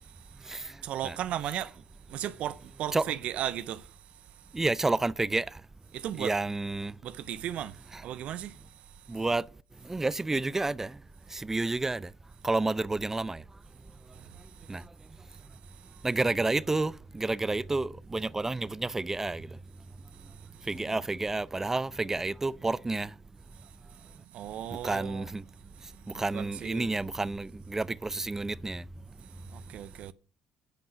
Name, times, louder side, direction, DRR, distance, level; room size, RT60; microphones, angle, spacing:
voice 1, 0.0-0.6 0.8-4.6 5.9-6.4 7.0-9.2 14.1-14.8 15.3-16.0 20.1-21.0 23.5-25.3 25.8-27.0 29.2-30.1, right 11 dB, 65° right, 0.5 m, -38 dB
voice 2, 4.5-5.5 6.2-6.9 7.9-8.0 9.1-9.4 9.9-10.9 11.3-12.1 12.4-13.4 14.7-14.8 16.0-19.5 20.7-23.1 24.8-25.4 26.2-28.8, right 2 dB, 20° right, 0.5 m, -30 dB
10.5 x 5.4 x 6.2 m
hypercardioid pair, 65°, 2 cm